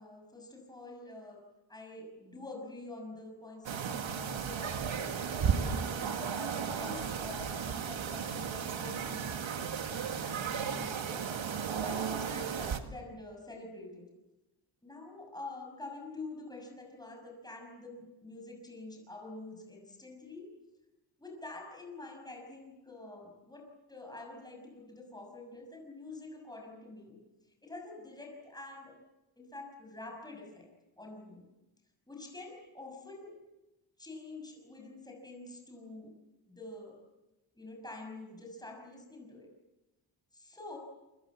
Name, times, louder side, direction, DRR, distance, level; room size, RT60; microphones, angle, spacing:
voice 1, 0.0-1.4 1.7-5.1 5.5-11.3 11.8-14.1 14.8-20.5 21.2-27.2 27.6-29.0 29.4-30.7 31.0-31.4 32.1-33.3 34.0-36.1 36.5-37.0 37.6-39.5 40.3-40.8, left 2 dB, 10° left, 1 dB, 6.3 m, -47 dB
sound 1, 3.6-12.8, right 7 dB, 90° right, 1.8 m, -34 dB
27.5 x 24.0 x 7.4 m, 1.0 s
wide cardioid pair, 175°, 45 cm